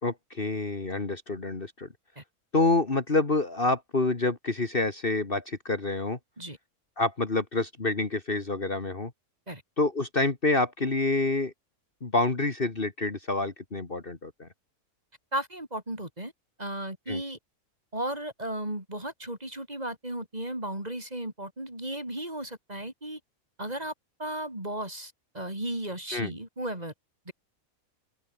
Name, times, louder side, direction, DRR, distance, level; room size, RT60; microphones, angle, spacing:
voice 1, 0.0-1.9 2.5-6.2 7.0-9.1 9.8-11.5 12.0-14.5 17.1-17.2 26.1-26.3, left 2 dB, 40° left, 2.3 m, -27 dB
voice 2, 15.3-16.3 16.6-17.4 17.9-23.2 23.6-23.9 24.2-26.9 27.3-27.4, right 1 dB, 25° right, 5.3 m, -35 dB
open air
omnidirectional pair, 1.5 m